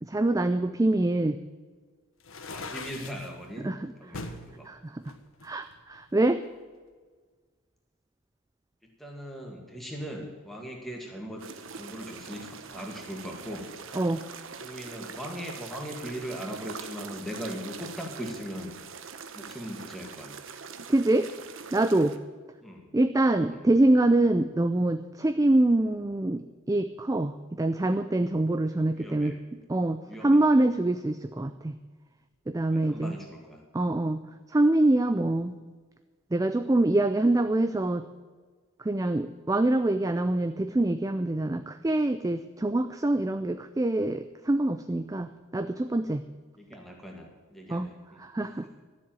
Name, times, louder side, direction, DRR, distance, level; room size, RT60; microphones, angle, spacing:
voice 1, 0.0-1.4 3.6-3.9 4.7-5.0 5.4-6.4 14.0-14.2 20.9-21.3 21.7-22.2 22.9-29.3 29.7-31.7 32.5-33.2 33.7-34.2 34.5-35.6 36.3-38.1 38.8-46.2 47.7-47.9 48.2-48.8, right 2 dB, 15° right, 10 dB, 0.3 m, -25 dB
sound 1, 2.2-3.3 4.1-4.4 5.0-6.1, left 3 dB, 65° left, 1.3 m, -40 dB
voice 2, 2.5-3.7 4.0-4.7 8.8-11.4 11.7-13.7 14.6-18.7 19.3-20.4 22.6-22.9 23.5-23.7 28.7-29.4 30.1-30.5 32.7-33.6 46.6-48.3, equal, ahead, 0 dB, 2.1 m, -39 dB
sound 2, 11.4-22.2, right 5 dB, 60° right, 0.9 m, -43 dB
12.5 x 7.5 x 9.2 m, 1.5 s
head